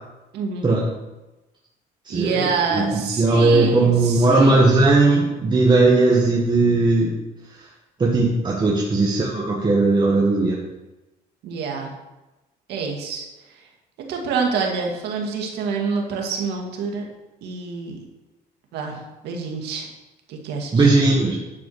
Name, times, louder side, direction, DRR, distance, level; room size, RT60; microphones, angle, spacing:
voice 1, 0.3-0.7 2.1-4.6 11.4-11.9 12.7-13.6 14.1-17.1 17.4-18.0 18.7-19.9 20.3-20.9, right 5 dB, 85° right, 1 dB, 2.0 m, -27 dB
voice 2, 2.0-7.2 7.6-7.7 8.0-10.6 20.7-21.4, right 2 dB, 25° right, -3 dB, 1.5 m, -18 dB
11.0 x 4.7 x 6.4 m, 1.0 s
cardioid pair, 110°, 17 cm